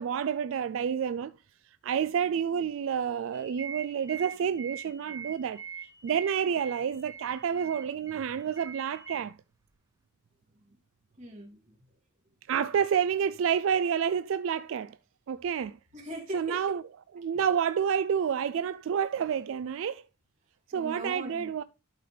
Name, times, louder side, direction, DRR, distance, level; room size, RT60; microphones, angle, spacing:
voice 1, 0.0-1.3 1.8-5.6 6.0-9.4 12.5-15.0 15.3-15.8 16.3-20.0 20.7-21.6, right 7 dB, 70° right, 0.3 m, -29 dB
sound 1, 3.3-9.2, right 7 dB, 15° right, 0.6 m, -43 dB
voice 2, 11.2-12.0 15.9-16.6 20.7-21.5, right 1 dB, 35° right, 2.6 m, -41 dB
12.0 x 4.3 x 3.3 m
head